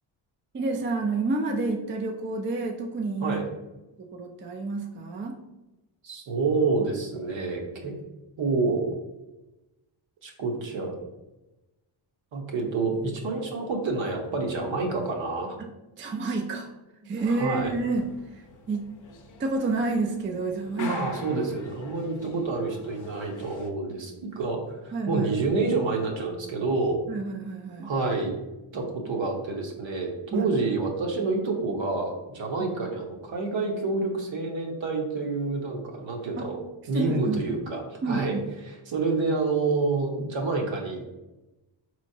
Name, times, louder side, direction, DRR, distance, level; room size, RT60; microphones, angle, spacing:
voice 1, 0.5-3.4 4.1-5.4 15.6-15.7 16.0-16.7 17.1-18.1 18.3-18.8 19.4-20.9 21.3-21.4 24.9-25.3 27.1-27.9 30.3-30.5 36.4-36.5 36.9-37.4 38.0-38.4, right 3 dB, 25° right, 3 dB, 0.4 m, -29 dB
voice 2, 6.0-7.9 8.4-8.9 10.2-10.9 12.3-15.6 17.3-17.7 20.8-27.0 27.8-28.3 28.7-36.6 36.9-38.4 38.6-41.1, right 3 dB, 65° right, 1 dB, 1.0 m, -28 dB
sound 1, 17.2-23.7, left 4 dB, 40° left, 0.6 m, -45 dB
4.3 x 3.1 x 2.7 m, 1.0 s
cardioid pair, 95°, 50 cm